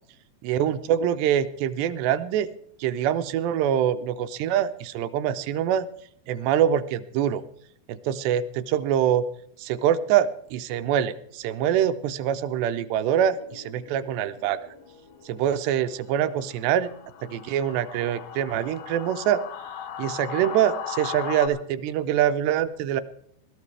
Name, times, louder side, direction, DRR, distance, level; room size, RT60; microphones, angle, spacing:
voice 1, 0.4-2.5 2.8-5.9 6.3-7.4 7.9-9.2 9.6-14.6 15.3-16.9 17.2-19.4 20.0-23.0, right 10 dB, 80° right, 11 dB, 2.7 m, -24 dB
sound 1, 13.1-21.5, left 8 dB, 85° left, 3.3 m, -39 dB
21.5 x 12.5 x 3.3 m, 0.68 s
omnidirectional pair, 4.9 m